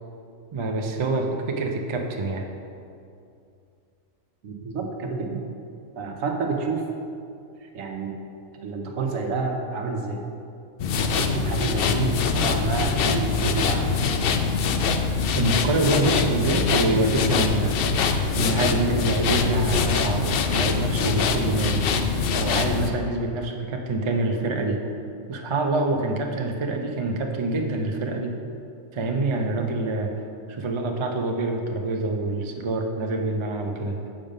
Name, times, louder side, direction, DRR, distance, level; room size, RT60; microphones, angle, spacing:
voice 1, 0.5-2.5 15.4-17.8 18.3-21.8 22.3-24.8 25.3-28.4 28.9-30.1 30.5-34.0, right 2 dB, 40° right, 2 dB, 0.4 m, -26 dB
voice 2, 4.4-5.4 6.0-6.8 7.6-8.2 8.6-10.2 10.9-14.0, right 3 dB, 75° right, 2 dB, 1.2 m, -29 dB
sound 1, 10.8-22.9, left 5 dB, 65° left, 0.5 m, -24 dB
7.5 x 5.2 x 5.3 m, 2.5 s
omnidirectional pair, 1.4 m